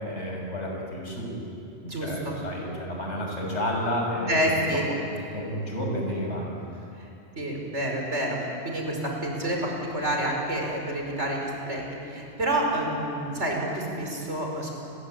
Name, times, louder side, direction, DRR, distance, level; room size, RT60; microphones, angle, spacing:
voice 1, 0.0-1.3 2.0-4.4 5.3-6.5, equal, 75° left, -1 dB, 6.8 m, -30 dB
voice 2, 1.8-2.4 4.3-4.9 7.0-7.1 7.4-14.7, right 1 dB, 75° right, 0 dB, 5.6 m, -28 dB
29.0 x 21.5 x 8.8 m, 2.7 s
omnidirectional pair, 1.2 m